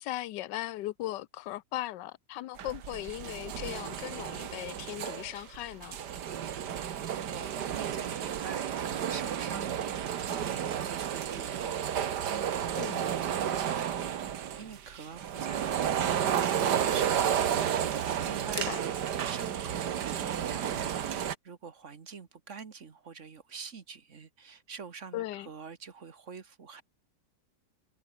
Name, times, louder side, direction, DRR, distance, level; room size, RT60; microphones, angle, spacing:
voice 1, 0.0-6.0 12.7-13.1 18.5-18.8 25.1-25.5, left 15 dB, 90° left, 1.3 m, -38 dB
sound 1, 2.6-21.3, right 9 dB, 75° right, 1.8 m, -32 dB
voice 2, 6.5-14.1 14.6-26.8, right 5 dB, 45° right, 1.6 m, -46 dB
omnidirectional pair, 1.8 m